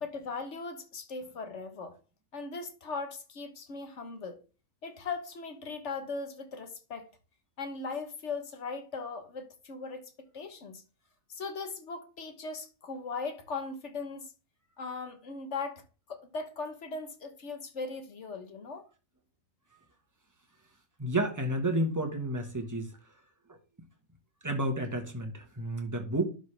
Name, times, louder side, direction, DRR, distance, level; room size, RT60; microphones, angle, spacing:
voice 1, 0.0-2.0 2.3-4.4 4.8-7.1 7.6-10.8 11.3-14.3 14.8-15.8 16.1-18.9, left 4 dB, 60° left, 1.3 m, -39 dB
voice 2, 21.0-23.0 24.4-26.3, right 1 dB, 15° right, 1.3 m, -31 dB
11.5 x 4.1 x 3.3 m
omnidirectional pair, 1.4 m